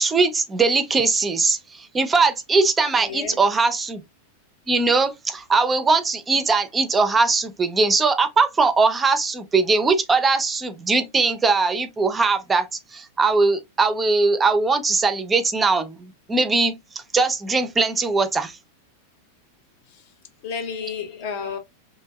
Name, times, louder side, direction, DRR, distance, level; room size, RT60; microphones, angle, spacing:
voice 1, 0.0-4.0 4.7-12.7 12.9-16.8 17.1-18.6, right 4 dB, 15° right, 0.5 m, -20 dB
voice 2, 3.0-3.4 19.9-20.0 20.4-21.6, left 6 dB, 50° left, 0.7 m, -31 dB
3.2 x 2.6 x 2.2 m
figure-of-eight pair, 90°, 0 cm